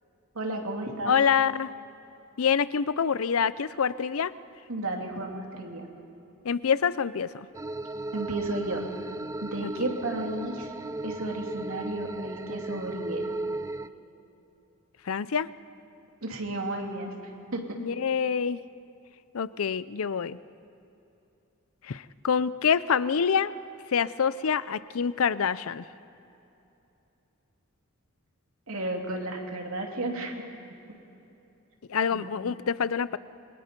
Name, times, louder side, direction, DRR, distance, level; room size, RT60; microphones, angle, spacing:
voice 1, 0.3-1.1 4.7-5.9 8.1-8.8 9.4-10.7 11.0-13.2 16.2-17.1 17.5-17.6 28.7-30.4 32.1-32.6, right 2 dB, 85° right, 1 dB, 2.8 m, -33 dB
voice 2, 1.1-1.7 2.4-4.3 6.4-7.5 9.6-9.7 15.1-15.5 17.8-18.6 19.3-20.4 21.9-23.5 23.9-25.8 31.9-33.2, left 6 dB, 80° left, 17 dB, 0.5 m, -26 dB
sound 1, 7.5-13.9, right 2 dB, 15° right, 0.4 m, -36 dB
27.5 x 22.5 x 5.3 m, 2.8 s
head